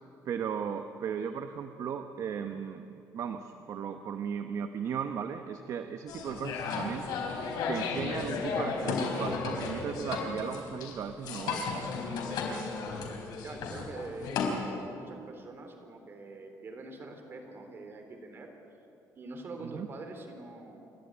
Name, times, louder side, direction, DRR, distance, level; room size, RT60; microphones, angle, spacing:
voice 1, 0.2-2.9 3.1-7.0 7.7-11.6 19.6-19.9, right 7 dB, 50° right, 7 dB, 1.0 m, -36 dB
sound 1, 6.1-14.5, left 4 dB, 75° left, 4.4 m, -34 dB
voice 2, 13.4-14.5 14.8-18.5 19.2-20.8, right 3 dB, 35° right, 4 dB, 3.6 m, -44 dB
29.0 x 13.0 x 9.5 m, 2.8 s
cardioid pair, 150°, 7 cm